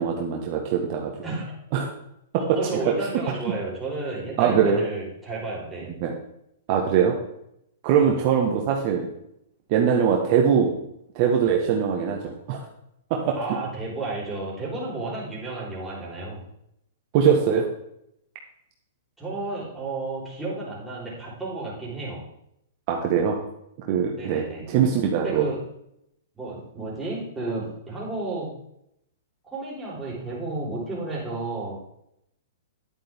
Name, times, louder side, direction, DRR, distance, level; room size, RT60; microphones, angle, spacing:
voice 1, 0.0-1.1 1.7-1.9 2.3-2.6 2.8-2.9 4.4-4.8 6.0-6.1 6.7-7.1 7.8-9.1 9.7-10.7 11.1-12.6 13.1-13.4 17.1-17.7 22.9-23.4 23.9-25.4, right 7 dB, 45° right, 1 dB, 1.5 m, -22 dB
voice 2, 1.2-1.6 2.4-6.0 7.9-8.2 13.3-16.4 19.2-22.2 24.1-24.7 25.2-25.6 26.3-28.5 29.4-31.8, right 2 dB, 5° right, -6 dB, 4.4 m, -32 dB
11.0 x 8.7 x 3.7 m, 0.77 s
hypercardioid pair, 135°, 0 cm